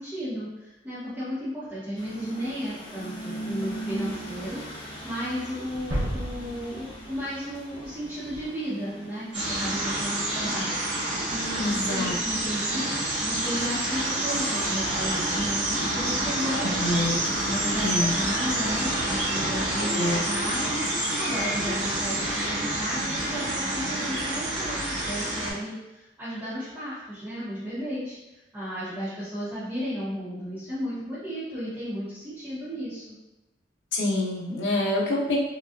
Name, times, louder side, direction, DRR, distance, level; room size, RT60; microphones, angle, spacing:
voice 1, 0.0-10.7 11.3-16.8 17.5-33.2, equal, 10° right, -13 dB, 1.0 m, -34 dB
sound 1, 2.0-20.1, right 1 dB, 30° left, 0.6 m, -42 dB
sound 2, 5.9-7.8, equal, 85° right, 1.0 m, -32 dB
sound 3, 9.3-25.5, right 1 dB, 70° right, 1.4 m, -28 dB
voice 2, 11.6-12.1 16.6-17.3 17.8-18.1 19.9-20.3 33.9-35.4, left 1 dB, 75° left, -3 dB, 0.8 m, -26 dB
5.1 x 2.4 x 2.5 m, 1.0 s
head